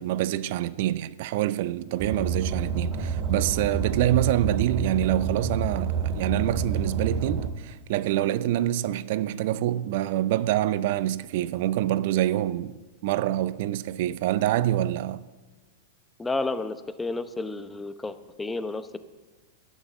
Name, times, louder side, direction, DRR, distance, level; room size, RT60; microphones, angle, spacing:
voice 1, 0.0-15.2, right 13 dB, 60° right, 0.5 m, -26 dB
Car, 2.0-7.5, right 5 dB, 40° right, 2.0 m, -28 dB
voice 2, 16.2-19.0, left 3 dB, 10° left, 0.8 m, -31 dB
11.0 x 8.3 x 7.2 m
hypercardioid pair, 105°, 0 cm